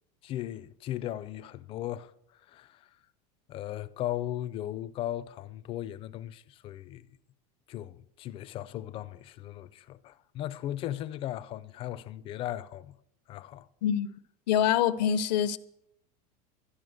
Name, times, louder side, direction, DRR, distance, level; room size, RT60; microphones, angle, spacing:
voice 1, 0.2-2.1 2.5-2.9 3.5-7.1 7.7-13.0 13.3-13.7, left 13 dB, 25° left, 0.4 m, -37 dB
voice 2, 14.5-15.6, left 9 dB, 85° left, 0.9 m, -25 dB
12.5 x 11.0 x 6.4 m
supercardioid pair, 165°, 21 cm